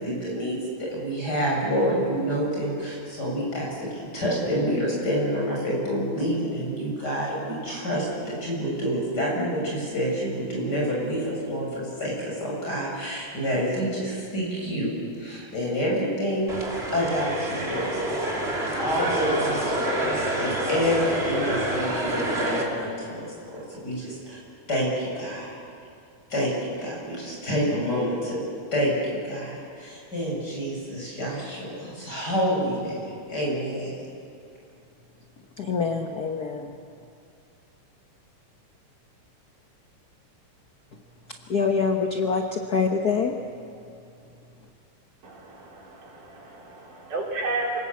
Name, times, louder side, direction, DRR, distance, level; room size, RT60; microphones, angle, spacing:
voice 1, 0.0-16.5 16.9-18.3 18.8-24.4 24.7-25.5 26.3-26.5 26.8-28.4 28.7-33.9, equal, 30° left, -4 dB, 8.1 m, -28 dB
sound 1, 16.5-22.6, right 1 dB, 20° right, 2.9 m, -27 dB
voice 2, 35.6-36.7 41.5-43.4, left 5 dB, 65° left, 3 dB, 0.9 m, -25 dB
voice 3, 45.2-47.8, right 2 dB, 85° right, -2 dB, 5.6 m, -32 dB
28.0 x 20.0 x 8.5 m, 2.5 s
omnidirectional pair, 3.5 m